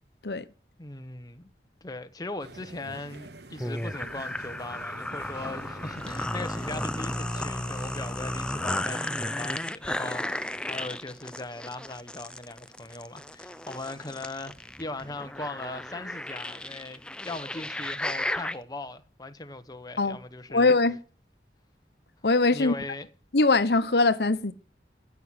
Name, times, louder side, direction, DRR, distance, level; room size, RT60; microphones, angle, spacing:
voice 1, 0.8-1.5 1.8-20.7 22.5-23.1, left 2 dB, 20° left, 1.1 m, -39 dB
sound 1, 2.4-8.9, right 2 dB, 70° right, 1.3 m, -46 dB
sound 2, 3.6-18.6, left 1 dB, 5° left, 0.6 m, -34 dB
voice 2, 20.5-21.0 22.2-22.7 23.3-24.5, left 3 dB, 70° left, 1.0 m, -22 dB
16.0 x 6.1 x 9.9 m
head